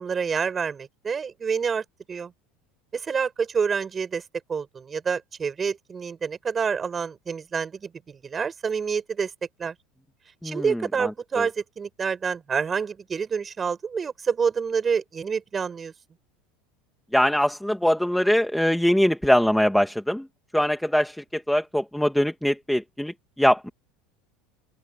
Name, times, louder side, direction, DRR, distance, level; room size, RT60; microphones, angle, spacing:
voice 1, 0.0-2.3 2.9-4.2 4.5-9.3 9.6-9.7 10.4-15.9, right 6 dB, 15° right, 4.8 m, -28 dB
voice 2, 10.4-11.1 11.4-11.5 17.1-20.3 20.5-23.7, equal, ahead, 1.1 m, -22 dB
open air
cardioid pair, 175°, 0 cm